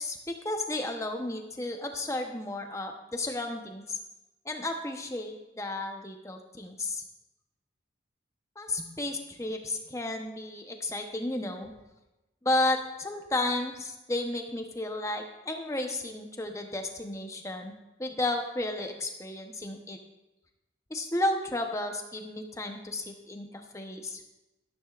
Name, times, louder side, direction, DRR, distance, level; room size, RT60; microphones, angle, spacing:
voice 1, 0.0-4.0 4.4-7.0 8.6-11.7 12.4-17.7 18.0-20.0 20.9-24.2, left 2 dB, 15° left, 4 dB, 0.9 m, -33 dB
12.5 x 12.5 x 2.5 m, 0.99 s
head